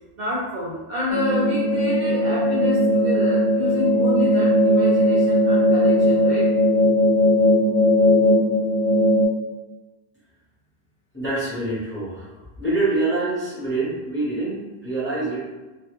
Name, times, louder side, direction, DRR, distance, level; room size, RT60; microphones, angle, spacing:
voice 1, 0.2-6.5, left 1 dB, 55° right, -7 dB, 0.6 m, -28 dB
sound 1, 1.1-9.2, equal, 5° right, 0.4 m, -18 dB
voice 2, 11.1-15.5, right 2 dB, 15° left, -9 dB, 0.8 m, -26 dB
2.2 x 2.1 x 2.9 m, 1.2 s
omnidirectional pair, 1.1 m